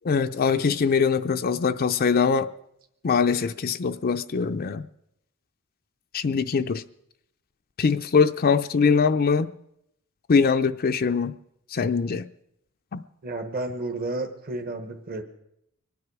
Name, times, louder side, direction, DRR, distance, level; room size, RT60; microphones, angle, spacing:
voice 1, 0.0-2.5 3.0-4.8 6.1-6.8 7.8-9.5 10.3-11.3 11.7-12.3 12.9-13.0, left 5 dB, 45° left, 9 dB, 0.5 m, -22 dB
voice 2, 13.2-15.2, right 2 dB, 45° right, 5 dB, 1.2 m, -31 dB
25.0 x 9.6 x 4.8 m, 0.77 s
head